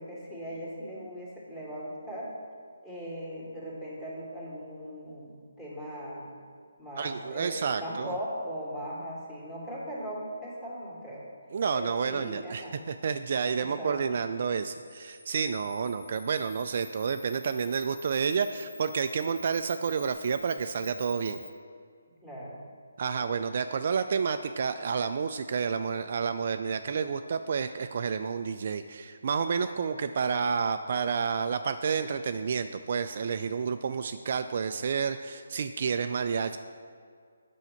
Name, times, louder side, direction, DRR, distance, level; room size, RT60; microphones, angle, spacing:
voice 1, 0.0-2.3 2.8-6.3 6.8-11.3 11.7-12.8 13.5-14.2 22.2-22.6, equal, 10° left, -7 dB, 2.3 m, -39 dB
voice 2, 7.0-8.1 11.5-21.4 23.0-36.6, right 6 dB, 50° right, 8 dB, 0.3 m, -30 dB
Camera, 14.5-21.5, left 2 dB, 40° left, 2.4 m, -49 dB
8.1 x 6.4 x 5.8 m, 2.2 s
figure-of-eight pair, 150°, 0 cm